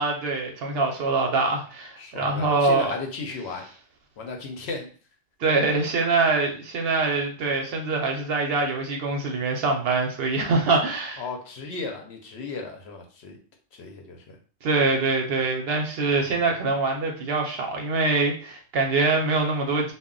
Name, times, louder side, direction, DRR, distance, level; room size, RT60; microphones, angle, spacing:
voice 1, 0.0-2.9 5.4-11.2 14.6-19.9, right 3 dB, 65° right, 2 dB, 0.7 m, -24 dB
voice 2, 2.0-3.7 4.2-4.9 11.2-13.4 13.7-14.4 16.2-16.5, left 3 dB, 65° left, 3 dB, 0.8 m, -35 dB
2.1 x 2.0 x 3.6 m, 0.40 s
omnidirectional pair, 1.3 m